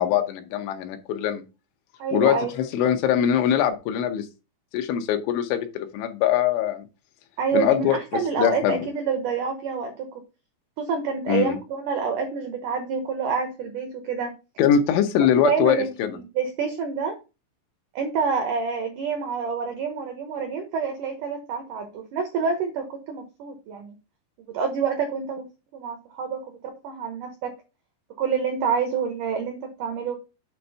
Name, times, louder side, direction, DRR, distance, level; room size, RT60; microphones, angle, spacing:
voice 1, 0.0-1.4 2.1-4.3 4.7-6.9 7.5-8.0 8.4-8.9 11.3-11.6 14.6-16.2, left 9 dB, 90° left, 5 dB, 3.3 m, -22 dB
voice 2, 2.0-2.6 7.4-10.1 10.8-14.3 15.4-17.1 18.0-23.9 24.4-25.5 25.7-26.6 26.8-27.5 28.2-30.2, right 6 dB, 85° right, 5 dB, 1.8 m, -27 dB
8.4 x 3.4 x 5.4 m, 0.29 s
omnidirectional pair, 5.2 m